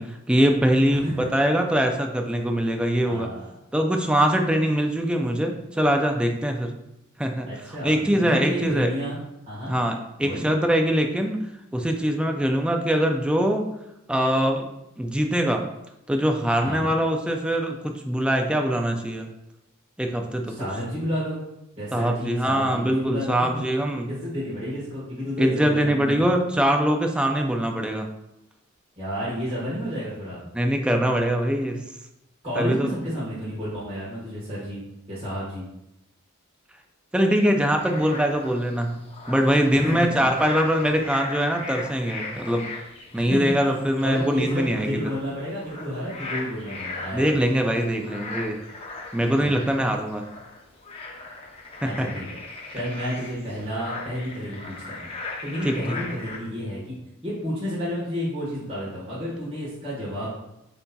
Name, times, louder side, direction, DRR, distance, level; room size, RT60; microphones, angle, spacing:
voice 1, 0.0-3.3 3.7-6.7 7.2-7.5 7.8-8.9 9.7-11.4 11.7-13.7 14.1-14.7 15.0-15.6 16.1-17.8 18.1-19.3 20.0-20.5 21.9-24.1 25.4-28.1 30.5-31.8 32.6-32.9 37.1-42.7 43.1-45.0 47.1-48.6 49.1-50.3 51.8-52.1 55.6-55.8, equal, 5° right, 3 dB, 0.3 m, -23 dB
voice 2, 0.9-1.3 3.0-3.4 7.5-9.2 9.5-9.8 10.2-10.4 16.6-16.9 20.5-21.4 21.8-23.6 24.1-26.2 29.0-30.4 32.4-34.8 35.1-35.7 39.7-40.3 43.1-43.5 44.0-47.3 49.4-49.7 51.8-52.2 52.7-55.0 55.4-60.3, equal, 30° right, -8 dB, 1.3 m, -31 dB
sound 1, 37.8-56.4, left 3 dB, 30° left, 0.6 m, -38 dB
8.1 x 2.7 x 2.2 m, 0.87 s
head